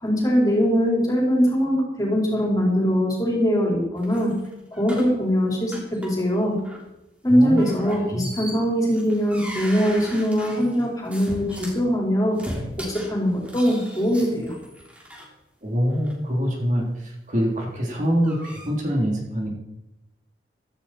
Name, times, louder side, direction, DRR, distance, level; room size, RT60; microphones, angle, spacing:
voice 1, 0.0-4.3 4.8-6.6 7.2-12.4 12.8-14.6, equal, 20° left, -3 dB, 4.8 m, -22 dB
sound 1, 4.0-5.2 5.7-6.3 6.6-6.9 7.6-11.8 12.3-15.3 15.9-16.1 17.8-18.7, equal, 5° right, 3.1 m, -38 dB
voice 2, 7.3-7.7 7.9-8.3 15.6-19.5, equal, 40° right, -1 dB, 3.6 m, -25 dB
16.5 x 14.0 x 4.5 m, 0.91 s
head